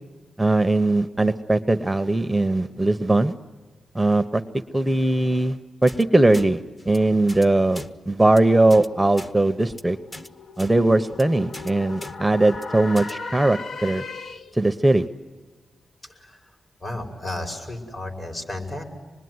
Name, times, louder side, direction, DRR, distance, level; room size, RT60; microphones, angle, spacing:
voice 1, 0.4-3.3 3.9-4.4 4.7-10.0 10.6-14.0 14.5-15.0, right 2 dB, 10° right, 9 dB, 0.7 m, -20 dB
sound 1, 5.9-6.0 6.3-6.5 6.8-7.0 7.3-7.5 7.7-7.9 8.2-8.4 8.7-8.9 9.1-9.3 9.6-9.8 10.1-10.3 10.6-10.7 11.0-11.2 11.5-11.7 12.0-12.1 12.5-12.6 13.0-13.1, left 1 dB, 25° left, 1.1 m, -39 dB
sound 2, 9.5-14.7, left 4 dB, 70° left, 1.0 m, -38 dB
voice 2, 16.0-16.5 16.8-18.8, left 1 dB, 45° left, 3 dB, 5.3 m, -33 dB
26.0 x 21.0 x 9.5 m, 1.3 s
wide cardioid pair, 110°, 0 cm